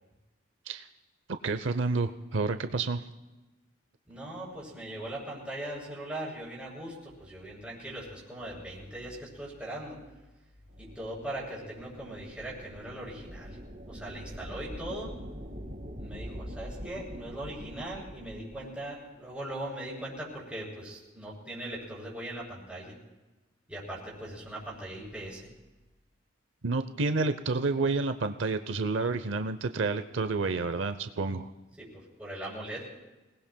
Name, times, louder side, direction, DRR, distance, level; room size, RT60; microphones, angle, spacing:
voice 1, 1.4-3.0 26.6-31.5, right 3 dB, 80° right, 10 dB, 0.7 m, -29 dB
voice 2, 4.1-10.0 10.8-13.6 13.9-15.1 16.0-22.9 23.7-25.5 31.8-32.9, right 1 dB, 5° right, -6 dB, 6.5 m, -40 dB
sound 1, 10.7-18.8, equal, 50° right, 2.5 m, -44 dB
27.0 x 19.0 x 2.3 m, 1.1 s
head